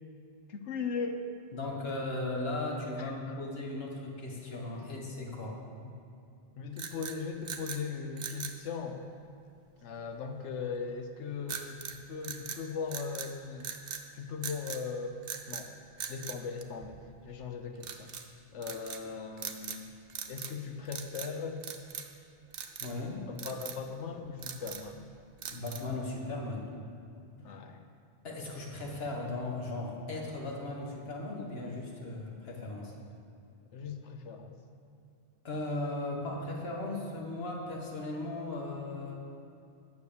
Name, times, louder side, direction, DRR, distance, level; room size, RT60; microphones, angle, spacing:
voice 1, 0.5-1.3 2.9-3.3 4.7-4.9 6.6-9.1 9.8-13.7 14.1-15.2 15.5-15.7 16.1-18.1 18.5-19.9 20.3-21.6 23.3-25.0 27.4-27.8 33.7-34.5, left 5 dB, 80° left, 6 dB, 1.1 m, -39 dB
voice 2, 1.5-5.6 22.8-23.3 25.5-26.7 28.2-32.9 35.4-39.1, left 2 dB, 60° left, -1 dB, 1.7 m, -37 dB
sound 1, 6.7-7.8 8.2-8.6 11.5-12.0 12.2-13.3 13.6-14.1 14.4-14.8 15.2-15.7 16.0-17.2 17.8-18.3 18.6-19.0 19.4-19.8 20.1-20.6 20.9-21.3 21.6-22.2 22.5-22.9 23.4-23.8 24.2-24.9 25.4-26.0, right 7 dB, 60° right, 0.9 m, -41 dB
9.5 x 7.0 x 6.8 m, 2.5 s
omnidirectional pair, 1.2 m